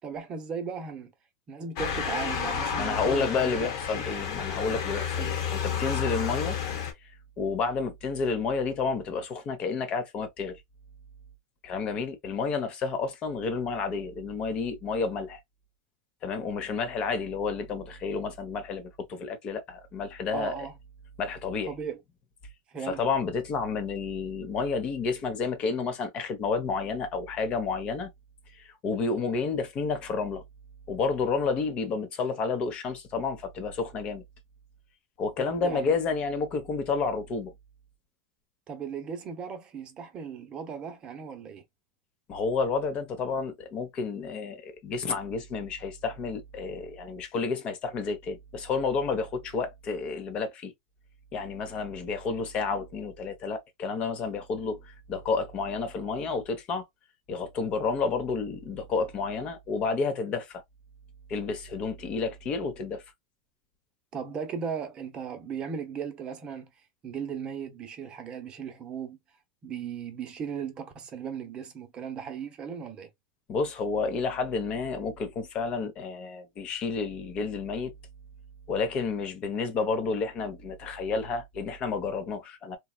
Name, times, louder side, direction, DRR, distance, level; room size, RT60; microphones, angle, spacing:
voice 1, 0.0-1.1 1.5-3.7 5.2-5.4 20.3-20.7 21.7-22.0 22.7-23.0 35.4-36.0 38.7-41.6 64.1-66.7 67.0-69.2 69.6-73.1, right 7 dB, 30° right, 0.8 m, -37 dB
Motor vehicle (road) / Siren, 1.8-6.9, left 7 dB, 60° left, 1.1 m, -31 dB
voice 2, 2.8-6.6 7.0-7.1 7.4-10.6 11.6-15.4 16.2-20.5 21.2-21.7 22.8-28.1 28.5-30.4 30.9-34.2 35.2-37.5 42.3-50.7 51.3-56.8 57.3-60.6 61.3-63.0 73.5-77.9 78.7-82.8, left 4 dB, 40° left, 0.8 m, -30 dB
3.0 x 2.3 x 2.2 m
supercardioid pair, 125°, 3 cm